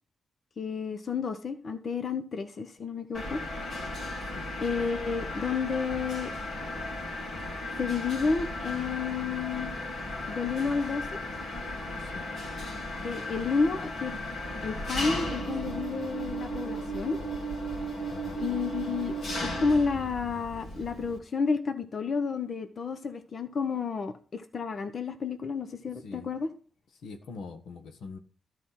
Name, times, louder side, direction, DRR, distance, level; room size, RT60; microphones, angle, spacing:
voice 1, 0.6-3.4 4.6-6.3 7.7-9.7 10.3-11.1 13.0-14.2 14.6-17.2 18.4-19.1 19.4-26.5, left 5 dB, 50° left, 9 dB, 1.0 m, -31 dB
Mechanisms, 3.1-21.2, equal, 65° left, 3.2 m, -35 dB
voice 2, 26.9-28.2, left 4 dB, 90° left, 6 dB, 1.4 m, -43 dB
12.5 x 5.0 x 5.8 m, 0.40 s
cardioid pair, 100°, 0 cm